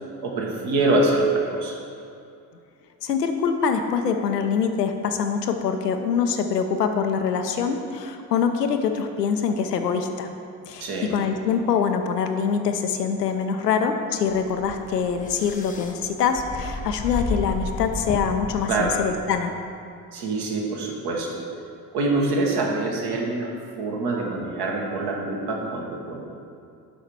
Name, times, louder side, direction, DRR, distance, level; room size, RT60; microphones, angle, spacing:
voice 1, 0.2-1.8 10.8-11.1 18.7-18.9 20.1-21.4 21.9-23.5 23.8-26.3, right 2 dB, 55° right, -1 dB, 1.6 m, -25 dB
voice 2, 3.0-10.3 10.7-19.5, left 6 dB, 90° left, 6 dB, 0.6 m, -24 dB
sound 1, 14.2-19.4, left 3 dB, 15° left, 0.6 m, -33 dB
6.8 x 5.6 x 4.7 m, 2.5 s
figure-of-eight pair, 55°, 47 cm